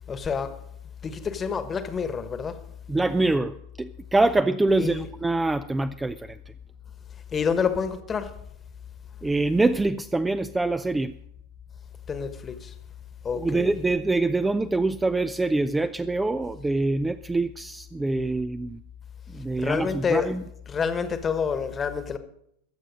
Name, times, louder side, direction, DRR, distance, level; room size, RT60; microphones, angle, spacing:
voice 1, 0.1-0.6 1.0-2.6 4.8-5.1 7.3-8.4 12.1-12.7 13.2-13.7 19.3-20.3 20.7-22.2, left 6 dB, 20° left, 1.3 m, -28 dB
voice 2, 2.9-6.4 9.2-11.1 13.4-18.8 19.3-20.4, right 2 dB, 10° right, 0.4 m, -25 dB
22.5 x 7.4 x 5.2 m
figure-of-eight pair, 90°, 0 cm